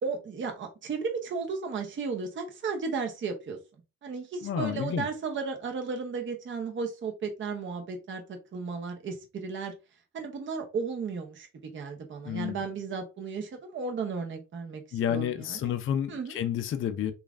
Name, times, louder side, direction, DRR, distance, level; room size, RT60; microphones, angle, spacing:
voice 1, 0.0-3.6 4.0-9.7 10.1-15.6 16.1-16.4, right 5 dB, 30° right, 0.7 m, -34 dB
voice 2, 4.4-5.1 12.3-12.6 14.9-17.1, left 9 dB, 35° left, 0.4 m, -30 dB
3.0 x 2.4 x 2.4 m
cardioid pair, 90°, 37 cm